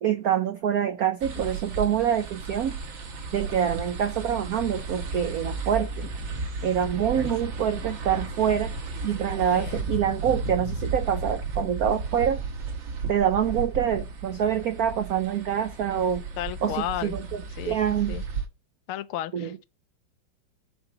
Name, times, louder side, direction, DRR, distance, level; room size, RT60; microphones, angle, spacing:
voice 1, 0.0-2.8 3.3-6.1 6.6-8.8 9.0-12.4 13.1-16.3 16.6-18.2 19.3-19.6, right 9 dB, 90° right, 0.8 m, -26 dB
sound 1, 1.2-18.5, right 3 dB, 65° right, 2.1 m, -34 dB
voice 2, 16.4-17.1 17.6-17.8 18.1-18.2 18.9-19.6, left 12 dB, 85° left, 1.5 m, -33 dB
9.7 x 3.9 x 7.0 m
omnidirectional pair, 2.3 m